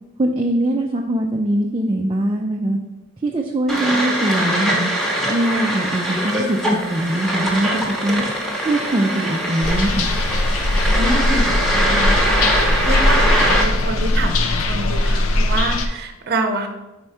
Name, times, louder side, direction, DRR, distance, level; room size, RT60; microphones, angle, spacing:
voice 1, 0.2-2.8 3.2-4.9 5.3-8.2 8.6-10.1, right 1 dB, 25° right, 1 dB, 0.4 m, -22 dB
sound 1, 3.7-13.6, equal, ahead, 1.0 m, -22 dB
sound 2, 9.6-15.9, left 2 dB, 80° left, 0.6 m, -19 dB
voice 2, 10.9-12.4 12.8-16.7, right 2 dB, 50° right, 6 dB, 0.8 m, -26 dB
4.7 x 4.3 x 5.5 m, 1.0 s
head